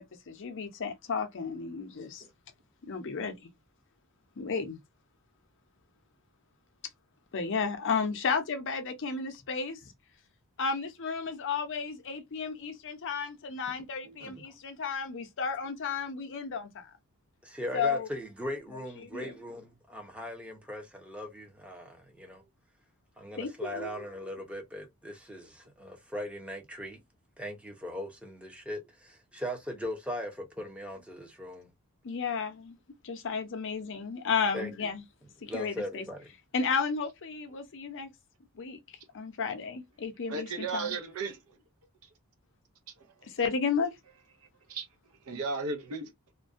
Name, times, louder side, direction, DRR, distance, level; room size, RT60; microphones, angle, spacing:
voice 1, 0.0-2.2 2.8-3.5 4.4-4.8 7.3-9.9 10.6-16.9 17.7-18.1 19.0-19.4 23.3-24.0 32.0-32.8 33.0-35.0 35.4-36.1 36.5-38.1 38.5-41.0 43.2-44.0, left 5 dB, 55° left, 0.6 m, -33 dB
voice 2, 17.4-22.4 23.2-27.0 27.4-31.7 34.5-34.7 35.5-36.3, equal, 5° right, 0.6 m, -39 dB
voice 3, 40.3-41.4 43.0-43.2 44.7-44.9 45.3-46.1, right 3 dB, 75° right, 0.7 m, -35 dB
2.5 x 2.2 x 2.4 m
head